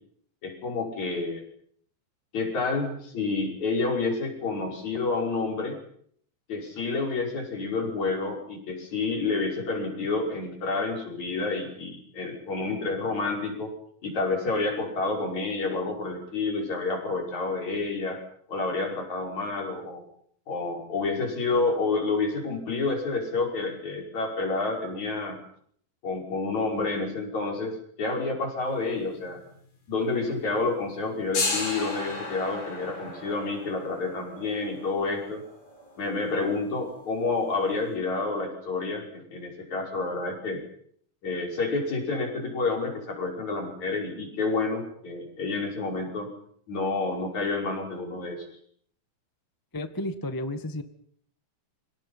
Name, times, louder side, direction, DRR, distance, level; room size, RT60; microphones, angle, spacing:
voice 1, 0.4-1.4 2.3-5.8 6.5-13.7 14.0-18.2 18.5-20.0 20.5-25.4 26.0-29.4 29.9-35.4 36.0-40.6 41.2-46.3 46.7-48.5, left 3 dB, 50° left, 2 dB, 7.0 m, -29 dB
sound 1, 28.7-29.6 29.8-29.9 30.8-37.5, left 3 dB, 90° left, 10.0 m, -35 dB
voice 2, 49.7-50.8, left 1 dB, 20° left, 8 dB, 0.6 m, -32 dB
30.0 x 25.5 x 5.8 m, 0.63 s
omnidirectional pair, 4.2 m